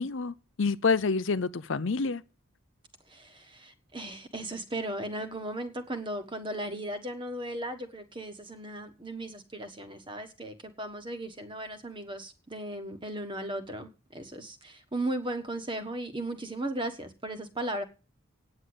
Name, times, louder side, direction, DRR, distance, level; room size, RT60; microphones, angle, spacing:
voice 1, 0.0-2.2, left 4 dB, 60° left, 0.6 m, -28 dB
voice 2, 3.1-17.8, right 1 dB, 25° right, 1.4 m, -36 dB
9.5 x 7.9 x 8.0 m
head